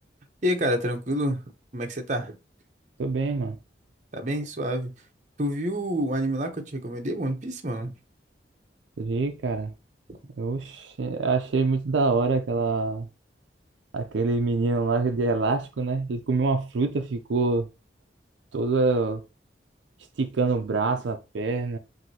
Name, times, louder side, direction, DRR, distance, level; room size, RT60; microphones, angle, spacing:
voice 1, 0.4-1.4 1.7-2.4 4.1-4.9 5.4-7.9, equal, 40° right, 0.8 m, -28 dB
voice 2, 3.0-3.6 9.0-9.7 10.4-13.1 13.9-17.7 18.5-19.2 20.2-21.8, right 3 dB, 80° right, 0.5 m, -25 dB
6.0 x 2.6 x 2.8 m
head